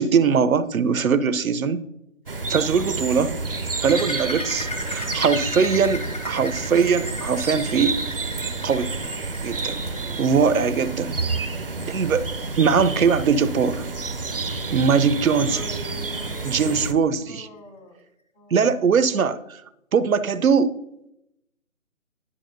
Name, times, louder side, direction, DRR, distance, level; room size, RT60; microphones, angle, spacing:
voice 1, 0.0-1.8 2.5-3.4 3.8-8.0 8.6-8.9 9.4-9.8 10.2-11.2 11.9-12.2 12.6-13.8 14.7-15.6 16.4-17.5 18.5-19.4 19.9-20.8, right 6 dB, 80° right, 14 dB, 0.7 m, -21 dB
sound 1, 2.3-16.9, right 3 dB, 45° right, 0.5 m, -29 dB
sound 2, 3.8-15.1 15.5-15.7 16.1-16.2 16.8-16.9, left 2 dB, 30° left, 0.7 m, -37 dB
voice 2, 9.9-10.5 15.5-18.0 18.3-19.2, left 1 dB, 70° left, 0 dB, 2.8 m, -43 dB
11.0 x 5.9 x 2.6 m, 0.84 s
figure-of-eight pair, 160°, 41 cm